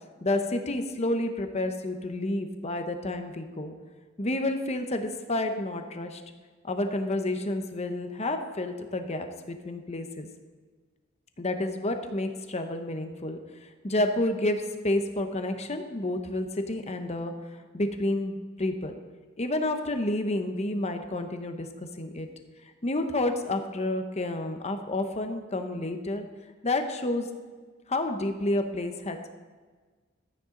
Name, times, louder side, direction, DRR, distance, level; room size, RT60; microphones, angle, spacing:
voice 1, 0.2-3.7 4.2-6.2 6.6-10.3 11.4-13.4 13.8-17.3 17.7-18.9 19.4-21.7 22.0-22.3 22.8-26.3 26.6-27.3 27.9-29.3, left 1 dB, 35° left, 6 dB, 0.9 m, -30 dB
13.0 x 9.4 x 3.9 m, 1.4 s
head